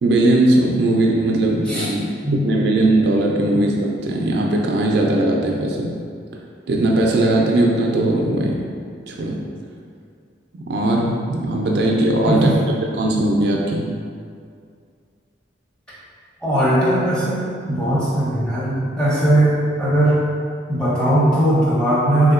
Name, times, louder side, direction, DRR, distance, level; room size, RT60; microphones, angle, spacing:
voice 1, 0.0-5.9 6.7-8.6 9.1-9.4 10.5-12.5 12.8-13.8, right 1 dB, 60° right, -1 dB, 0.3 m, -19 dB
voice 2, 16.4-20.2 20.7-22.3, right 1 dB, 5° left, -9 dB, 0.6 m, -18 dB
3.4 x 2.7 x 2.4 m, 2.2 s
head